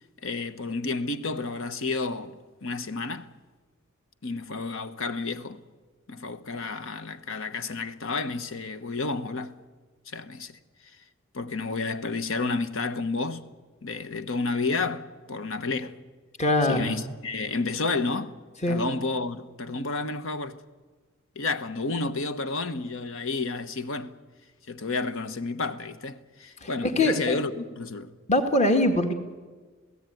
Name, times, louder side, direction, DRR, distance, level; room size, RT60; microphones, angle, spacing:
voice 1, 0.2-3.3 4.2-5.6 6.1-9.5 10.1-10.6 11.3-13.5 13.8-16.0 16.6-18.4 18.7-20.6 21.3-24.1 24.7-28.1, left 3 dB, 70° left, 1.2 m, -31 dB
voice 2, 16.4-17.0 18.6-18.8 26.6-27.4 28.3-29.1, left 1 dB, 35° left, 2.0 m, -23 dB
27.5 x 17.0 x 9.3 m
head